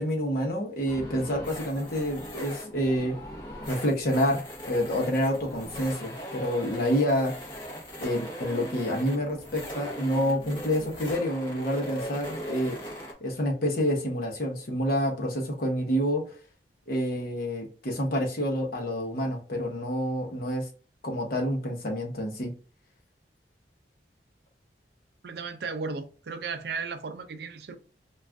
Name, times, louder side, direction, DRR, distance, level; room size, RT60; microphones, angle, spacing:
voice 1, 0.0-3.1 3.7-7.3 8.0-12.8 13.2-16.3 16.9-20.7 21.0-22.5, equal, 55° left, 0.8 m, -28 dB
sound 1, 0.9-13.1, equal, 25° left, 0.8 m, -39 dB
voice 2, 25.2-27.8, right 4 dB, 65° right, 0.4 m, -35 dB
2.4 x 2.3 x 3.3 m
head